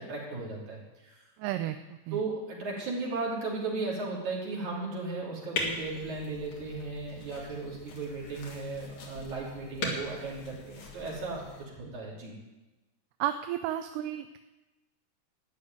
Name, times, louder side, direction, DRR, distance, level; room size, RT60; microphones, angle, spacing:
voice 1, 0.0-1.2 2.1-11.4 11.8-12.3, right 3 dB, 65° right, -4 dB, 4.6 m, -36 dB
voice 2, 1.4-2.2 9.8-10.0 13.2-14.4, right 12 dB, 85° right, 9 dB, 2.2 m, -33 dB
sound 1, 5.5-11.6, left 2 dB, 60° left, 3.1 m, -39 dB
13.5 x 6.6 x 9.6 m, 1.1 s
omnidirectional pair, 3.7 m